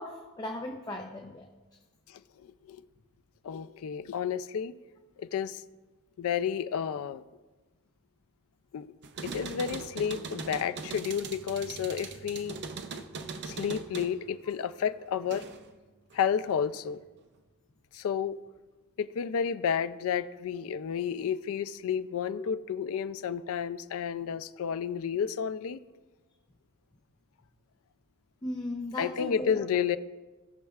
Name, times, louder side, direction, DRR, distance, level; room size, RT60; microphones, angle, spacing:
voice 1, 0.0-1.5 22.4-22.5 28.4-29.6, left 1 dB, 15° left, 2 dB, 0.6 m, -37 dB
voice 2, 2.1-2.8 3.4-4.8 5.2-5.6 6.2-7.2 8.7-8.9 9.2-12.6 13.4-15.5 16.1-17.0 17.9-18.4 19.0-25.8 29.0-30.0, left 7 dB, 65° left, 12 dB, 0.3 m, -31 dB
sound 1, 9.0-15.7 16.1-16.9, right 4 dB, 50° right, 0.6 m, -41 dB
18.0 x 6.4 x 2.3 m, 1.2 s
head